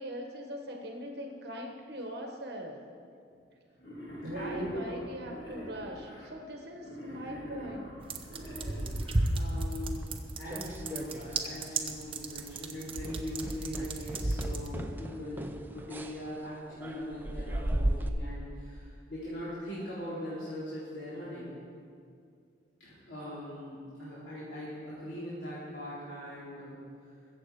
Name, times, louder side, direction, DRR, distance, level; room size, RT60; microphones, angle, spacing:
voice 1, 0.0-2.8 4.2-8.0 9.1-9.2, equal, 60° right, 2 dB, 1.3 m, -41 dB
Wild animals, 3.8-6.3 6.8-9.3, equal, 65° left, 2.5 m, -44 dB
voice 2, 4.3-5.0 9.3-21.5 22.8-26.8, equal, 90° left, -11 dB, 3.6 m, -40 dB
sound 1, 8.0-14.7, right 2 dB, 30° right, 0.8 m, -34 dB
sound 2, 10.0-11.5 11.7-12.1 12.4-12.6 13.0-18.1, right 1 dB, 10° right, 0.5 m, -37 dB
21.5 x 7.8 x 4.8 m, 2.4 s
head